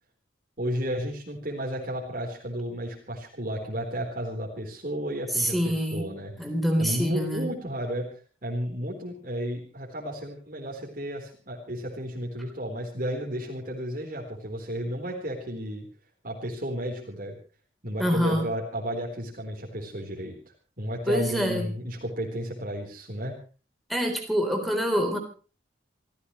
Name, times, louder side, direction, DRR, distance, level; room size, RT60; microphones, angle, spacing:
voice 1, 0.6-6.3 6.8-8.1 8.4-15.8 16.2-17.4 17.8-23.4, equal, 45° right, -1 dB, 4.1 m, -33 dB
voice 2, 5.3-6.1 6.4-7.5 18.0-18.5 21.1-21.7 23.9-25.2, equal, ahead, 5 dB, 3.8 m, -26 dB
28.0 x 15.5 x 3.2 m, 0.37 s
head